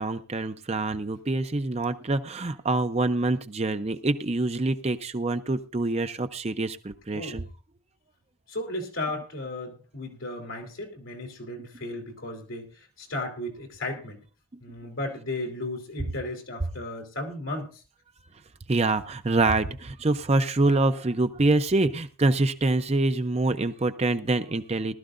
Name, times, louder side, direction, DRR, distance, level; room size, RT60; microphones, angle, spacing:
voice 1, 0.0-7.5 18.7-24.9, right 2 dB, 30° right, 9 dB, 0.6 m, -25 dB
voice 2, 8.5-14.2 14.6-17.7, left 2 dB, 65° left, 2 dB, 3.3 m, -35 dB
19.0 x 12.5 x 2.5 m, 0.34 s
head